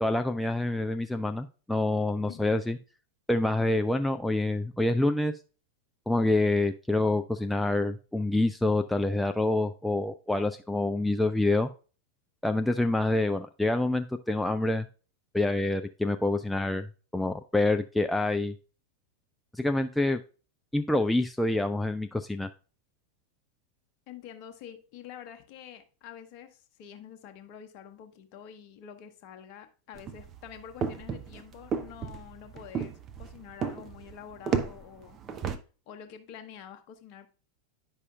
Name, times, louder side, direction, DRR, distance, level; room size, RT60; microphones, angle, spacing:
voice 1, 0.0-2.8 3.3-5.3 6.1-11.7 12.4-14.9 15.3-16.9 17.1-18.5 19.5-20.2 20.7-22.5, left 2 dB, 5° left, 6 dB, 0.3 m, -27 dB
voice 2, 2.3-2.6 24.1-35.2 35.9-37.3, left 9 dB, 45° left, 7 dB, 1.0 m, -47 dB
sound 1, 29.9-35.6, right 6 dB, 30° right, 0.7 m, -34 dB
9.5 x 5.5 x 2.4 m, 0.36 s
figure-of-eight pair, 90°, 0 cm